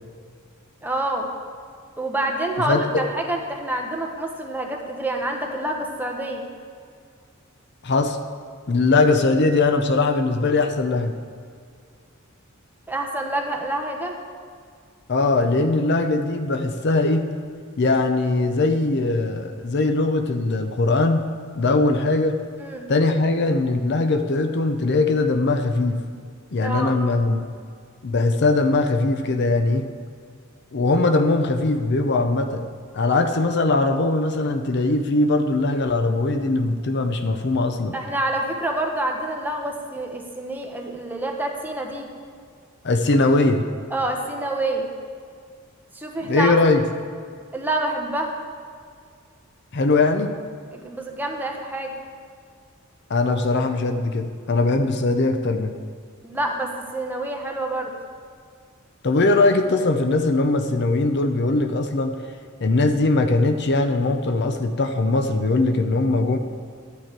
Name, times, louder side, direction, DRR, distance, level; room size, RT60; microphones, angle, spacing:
voice 1, 0.8-1.3 2.0-6.5 12.9-14.2 22.6-22.9 26.6-27.0 37.9-42.1 43.9-44.9 45.9-46.5 47.5-48.3 50.7-51.9 56.2-57.9, right 1 dB, 10° right, 1 dB, 1.0 m, -27 dB
voice 2, 2.7-3.0 7.8-8.2 8.7-11.1 15.1-17.3 17.8-21.3 21.5-22.4 22.9-26.0 26.5-27.4 28.0-29.9 30.7-32.6 32.9-37.9 42.8-43.6 46.2-46.8 49.7-50.3 53.1-55.7 59.0-62.2 62.6-66.4, left 2 dB, 55° left, 8 dB, 0.6 m, -20 dB
11.5 x 8.9 x 4.6 m, 2.2 s
head